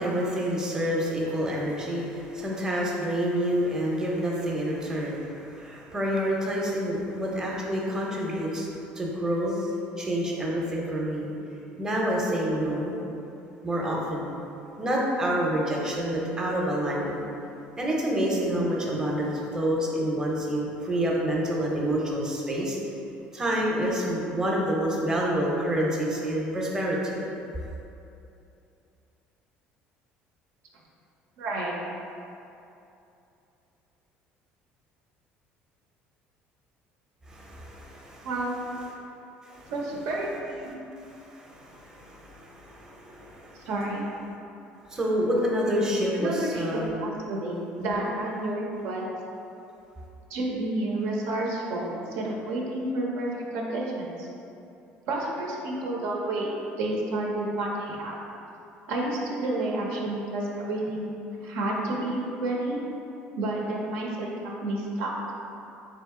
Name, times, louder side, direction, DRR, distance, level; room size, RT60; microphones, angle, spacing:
voice 1, 0.0-8.7 8.9-11.3 11.8-12.9 13.6-14.3 14.8-17.2 17.8-22.8 23.3-27.2 37.3-38.3 39.5-39.7 41.0-43.7 44.9-46.9 47.7-48.0, equal, 15° right, -3 dB, 0.7 m, -28 dB
voice 2, 31.4-31.8 38.2-38.6 39.7-40.7 43.6-44.1 46.1-49.1 50.3-54.3 55.1-56.5 56.8-58.2 58.9-61.1 61.4-62.8 63.4-65.1, right 2 dB, 80° right, -2 dB, 0.7 m, -30 dB
3.8 x 2.7 x 3.6 m, 2.8 s
cardioid pair, 115°, 4 cm